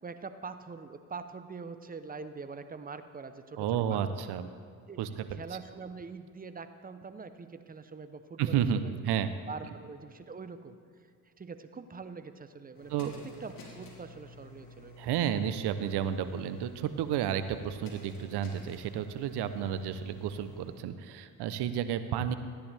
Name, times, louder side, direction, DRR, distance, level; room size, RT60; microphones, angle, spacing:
voice 1, 0.0-4.2 4.9-5.0 5.3-8.9 9.5-10.8 11.4-12.9 13.4-15.1, right 4 dB, 20° right, 10 dB, 0.8 m, -44 dB
voice 2, 3.6-4.5 5.0-5.4 8.4-9.3 12.9-13.1 15.0-22.4, right 9 dB, 70° right, 11 dB, 0.8 m, -31 dB
sound 1, 12.7-20.9, left 2 dB, 55° left, 2.7 m, -51 dB
14.0 x 10.0 x 3.4 m, 2.4 s
supercardioid pair, 60°, 42 cm